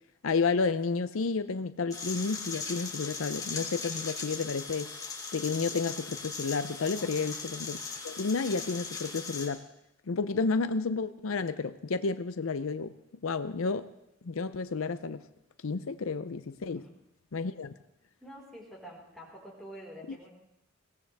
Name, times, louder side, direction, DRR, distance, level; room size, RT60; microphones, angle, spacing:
voice 1, 0.2-4.9 5.3-7.8 8.0-9.6 10.1-13.0 13.2-13.9 14.2-15.2 15.6-16.8 17.3-17.7 20.1-20.2, left 4 dB, 85° left, 12 dB, 0.6 m, -31 dB
sound 1, 1.9-9.5, left 4 dB, 20° left, 2.6 m, -39 dB
voice 2, 7.0-7.4 16.7-16.9 18.2-20.3, equal, ahead, -4 dB, 4.5 m, -48 dB
21.5 x 17.5 x 3.5 m, 0.83 s
head